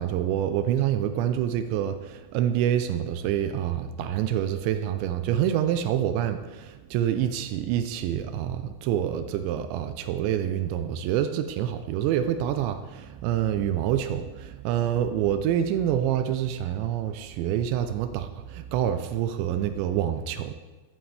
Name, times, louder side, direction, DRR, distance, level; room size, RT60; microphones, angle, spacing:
voice 1, 0.0-20.5, right 10 dB, 85° right, 9 dB, 2.6 m, -27 dB
14.0 x 11.0 x 3.3 m, 1.2 s
omnidirectional pair, 5.8 m